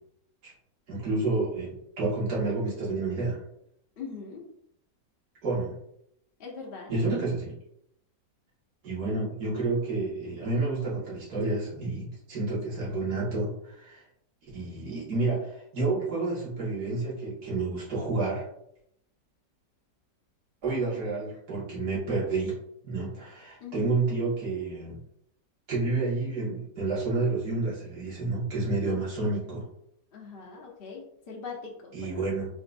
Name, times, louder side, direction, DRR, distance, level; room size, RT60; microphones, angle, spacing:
voice 1, 0.9-3.4 5.4-5.8 6.9-7.5 8.8-14.0 14.5-18.5 20.6-22.6 22.8-25.0 25.7-29.6 31.9-32.5, right 3 dB, 60° right, -7 dB, 2.3 m, -29 dB
voice 2, 4.0-4.4 6.4-6.9 23.6-23.9 30.1-32.1, left 5 dB, 50° left, -2 dB, 0.7 m, -41 dB
4.3 x 4.0 x 2.5 m, 0.74 s
omnidirectional pair, 1.9 m